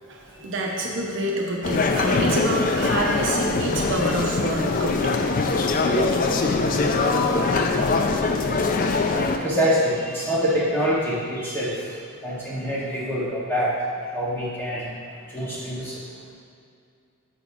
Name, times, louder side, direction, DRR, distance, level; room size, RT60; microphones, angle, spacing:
voice 1, 0.0-5.0, right 1 dB, 55° right, -1 dB, 0.8 m, -27 dB
sound 1, 1.6-9.4, left 3 dB, 40° left, 0.3 m, -22 dB
voice 2, 5.5-6.1 6.4-7.3 7.9-8.2 8.5-13.7 14.0-16.0, equal, 10° left, -8 dB, 1.4 m, -27 dB
7.1 x 4.1 x 4.8 m, 2.4 s
head